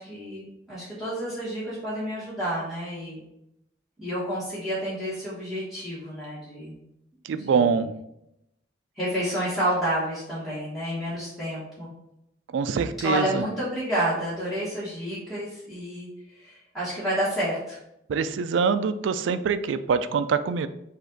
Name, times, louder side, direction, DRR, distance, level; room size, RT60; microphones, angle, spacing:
voice 1, 0.0-3.2 4.0-6.8 7.3-7.8 9.0-11.9 13.0-17.8, equal, ahead, -11 dB, 1.3 m, -30 dB
voice 2, 7.2-7.9 12.5-13.4 18.1-20.7, right 6 dB, 80° right, 12 dB, 0.3 m, -24 dB
5.1 x 2.5 x 3.8 m, 0.82 s
head